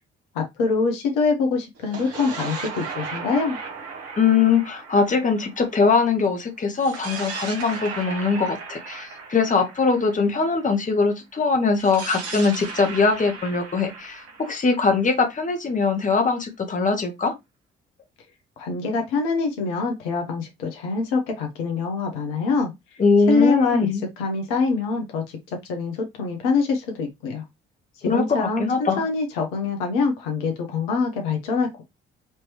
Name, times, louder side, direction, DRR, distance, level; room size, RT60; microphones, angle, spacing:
voice 1, 0.3-3.6 18.6-22.7 23.3-23.9 24.2-27.4 28.0-31.8, left 4 dB, 65° left, 0.9 m, -24 dB
sound 1, 1.8-6.2 6.8-10.7 11.7-15.6, right 4 dB, 50° right, 1.3 m, -36 dB
voice 2, 4.2-17.3 23.0-24.1 28.1-29.0, left 4 dB, 25° left, 1.1 m, -21 dB
4.6 x 3.0 x 3.0 m
figure-of-eight pair, 45°, 30 cm